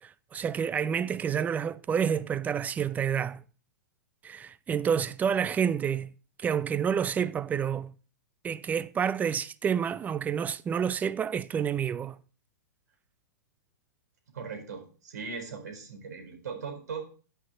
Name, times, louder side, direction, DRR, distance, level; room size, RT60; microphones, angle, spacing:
voice 1, 0.0-3.4 4.2-6.1 6.4-7.9 8.4-12.2, right 7 dB, 15° right, 0.5 m, -29 dB
voice 2, 14.3-17.0, right 5 dB, 65° right, 4.2 m, -39 dB
10.5 x 6.3 x 4.1 m
figure-of-eight pair, 110°, 10 cm